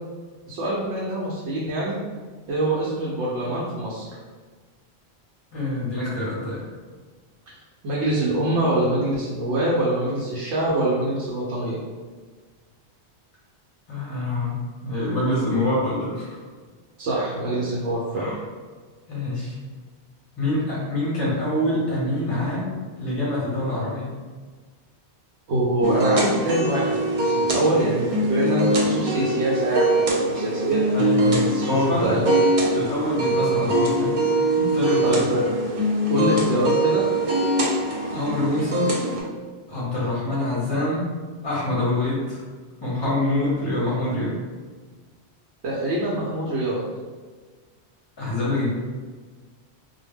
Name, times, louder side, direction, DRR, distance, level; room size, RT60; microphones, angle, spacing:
voice 1, 0.5-2.0 2.5-4.0 7.8-11.8 17.0-18.3 25.5-30.9 31.4-32.3 35.0-35.5 36.1-37.0 45.6-46.8, right 1 dB, 80° right, -5 dB, 0.9 m, -24 dB
voice 2, 5.5-6.6 13.9-14.6 14.8-16.4 18.1-18.4 19.1-19.5 20.4-24.1 30.9-32.2 32.7-34.2 34.6-35.2 36.1-36.3 38.1-38.9 39.7-41.1 41.4-42.4 42.8-44.3 48.2-48.7, left 1 dB, 25° left, -7 dB, 0.6 m, -25 dB
sound 1, 25.8-39.2, right 1 dB, 65° right, 0.3 m, -23 dB
2.2 x 2.1 x 3.3 m, 1.5 s
omnidirectional pair, 1.1 m